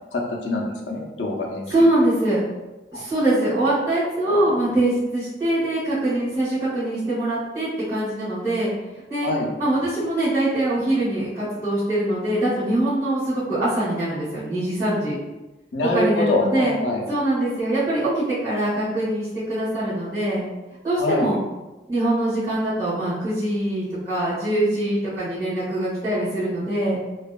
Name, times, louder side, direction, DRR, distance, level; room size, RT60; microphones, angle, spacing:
voice 1, 0.1-1.7 9.2-9.5 15.7-17.0 21.0-21.3, left 2 dB, 85° left, 0 dB, 0.5 m, -24 dB
voice 2, 1.7-2.4 2.9-8.7 9.1-9.3 9.6-15.1 15.9-16.8 17.1-20.4 20.8-21.4 21.9-27.0, right 1 dB, 20° right, -14 dB, 1.1 m, -23 dB
2.7 x 2.4 x 2.2 m, 1.1 s
head